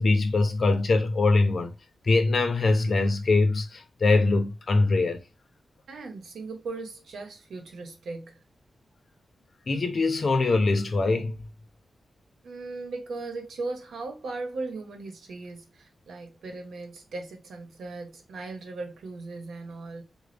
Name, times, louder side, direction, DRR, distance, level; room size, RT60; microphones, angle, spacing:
voice 1, 0.0-1.7 2.0-5.2 9.7-11.4, left 3 dB, 55° left, 0.7 m, -23 dB
voice 2, 5.9-8.4 12.4-20.0, right 3 dB, 90° right, 1.0 m, -38 dB
3.9 x 2.3 x 3.3 m
wide cardioid pair, 95°, 0 cm